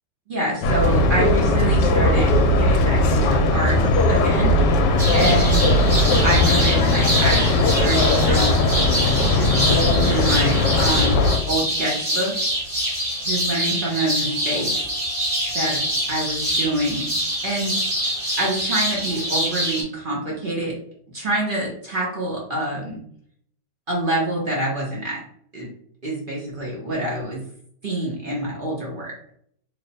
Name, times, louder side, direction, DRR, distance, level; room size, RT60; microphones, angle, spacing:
voice 1, 0.3-3.8 4.1-4.7 5.1-5.7 6.2-8.6 9.0-11.2 11.5-12.3 13.2-14.7 15.5-15.8 16.1-17.1 17.4-17.7 18.4-20.8 21.1-23.0 23.9-25.2 25.5-25.7 26.0-27.4 27.8-29.1, right 1 dB, 50° right, -4 dB, 0.6 m, -26 dB
sound 1, 0.6-11.4, left 2 dB, 75° left, 1.1 m, -18 dB
sound 2, 5.0-19.8, right 1 dB, 20° right, 0.9 m, -25 dB
3.2 x 2.0 x 4.0 m, 0.66 s
omnidirectional pair, 2.0 m